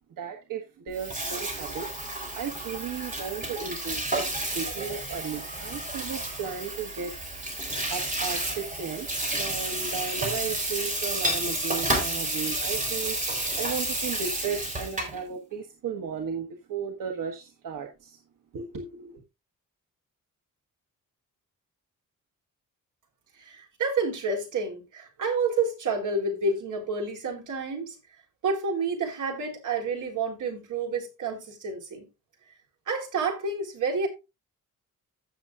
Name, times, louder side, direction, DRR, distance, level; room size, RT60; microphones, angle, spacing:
voice 1, 0.2-7.1 7.9-9.1 9.3-18.2 18.5-19.2, right 6 dB, 90° right, 1.4 m, -35 dB
Water tap faucet / Sink (filling or washing), 0.9-15.2, right 1 dB, 25° right, 3.7 m, -31 dB
voice 2, 23.5-28.0 28.4-32.1 32.9-34.1, right 4 dB, 70° right, 3.7 m, -29 dB
15.5 x 6.7 x 2.4 m
wide cardioid pair, 170°, 32 cm